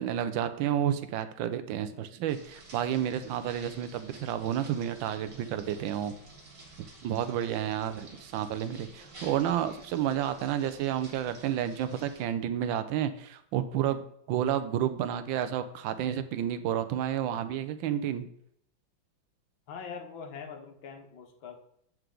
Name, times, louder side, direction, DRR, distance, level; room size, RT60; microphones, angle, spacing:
voice 1, 0.0-6.1 7.0-18.3, right 10 dB, 80° right, 11 dB, 1.3 m, -30 dB
sound 1, 2.3-12.2, right 2 dB, 55° right, 2.2 m, -51 dB
voice 2, 7.7-8.2 19.7-21.6, left 6 dB, 80° left, 3 dB, 1.8 m, -44 dB
7.9 x 4.6 x 3.8 m, 0.69 s
omnidirectional pair, 2.2 m